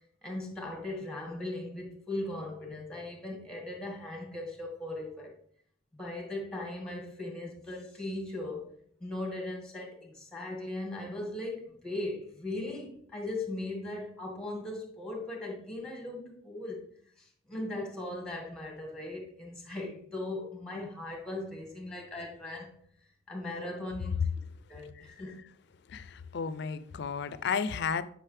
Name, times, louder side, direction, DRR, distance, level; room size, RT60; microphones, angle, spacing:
voice 1, 0.2-5.3 5.9-8.7 9.0-16.9 17.2-22.8 23.3-24.2 24.7-25.4, left 2 dB, 5° left, 1.9 m, -38 dB
voice 2, 25.9-28.0, left 6 dB, 65° left, 0.5 m, -33 dB
8.8 x 5.2 x 3.4 m
head